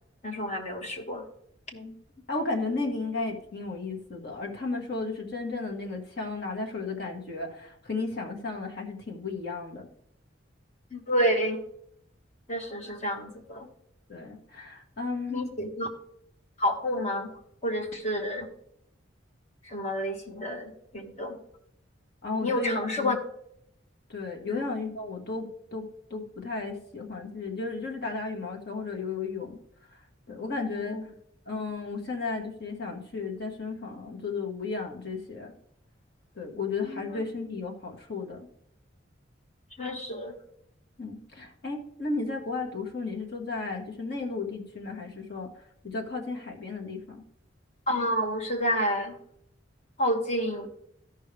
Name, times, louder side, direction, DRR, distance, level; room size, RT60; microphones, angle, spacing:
voice 1, 0.2-1.2 10.9-11.6 12.5-13.7 15.3-15.9 16.6-17.3 17.6-18.5 19.7-21.4 22.4-23.2 24.5-24.6 30.7-31.0 36.9-37.2 39.8-40.4 47.9-49.2 50.0-50.7, equal, 35° left, 3 dB, 1.2 m, -29 dB
voice 2, 2.3-9.9 14.1-15.5 22.2-23.1 24.1-29.6 30.3-31.0 31.5-35.5 36.3-38.5 41.0-45.5 45.8-47.2, left 3 dB, 55° left, 1 dB, 1.5 m, -34 dB
13.5 x 5.5 x 3.4 m, 0.74 s
head